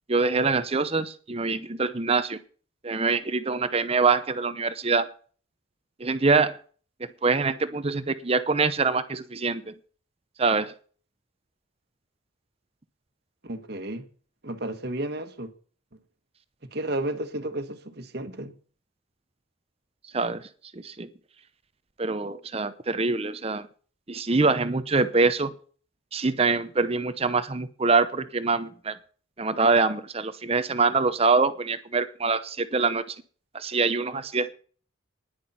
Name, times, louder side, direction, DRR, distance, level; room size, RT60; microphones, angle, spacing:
voice 1, 0.1-2.4 2.8-5.1 6.0-6.6 7.2-9.7 10.4-10.7 20.1-20.5 20.7-21.1 22.0-23.7 24.1-25.5 26.1-29.0 29.4-33.2 33.5-34.5, right 4 dB, 30° right, 0.7 m, -24 dB
voice 2, 13.4-14.1 14.4-15.5 16.6-18.5, right 1 dB, 50° right, 1.4 m, -32 dB
10.5 x 10.5 x 5.7 m
head